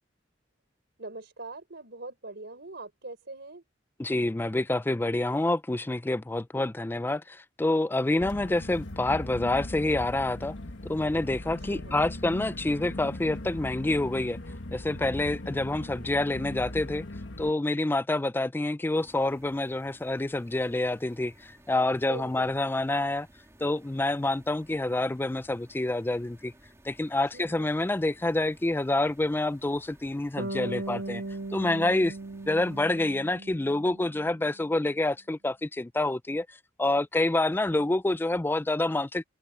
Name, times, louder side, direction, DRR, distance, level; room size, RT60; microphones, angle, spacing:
voice 1, 1.0-3.6 11.6-12.1 21.7-22.6 27.3-27.7, right 2 dB, 60° right, 4.8 m, -43 dB
voice 2, 4.0-10.5 10.9-14.4 14.7-17.0 17.4-21.3 21.7-23.3 23.6-26.5 26.8-31.2 31.5-32.2 32.5-36.5 36.8-39.3, left 2 dB, 10° left, 0.4 m, -27 dB
sound 1, 8.2-17.5, left 1 dB, 70° left, 1.7 m, -39 dB
sound 2, 18.9-33.2, right 1 dB, 15° right, 2.1 m, -57 dB
Bass guitar, 30.4-34.5, right 2 dB, 85° right, 1.5 m, -38 dB
head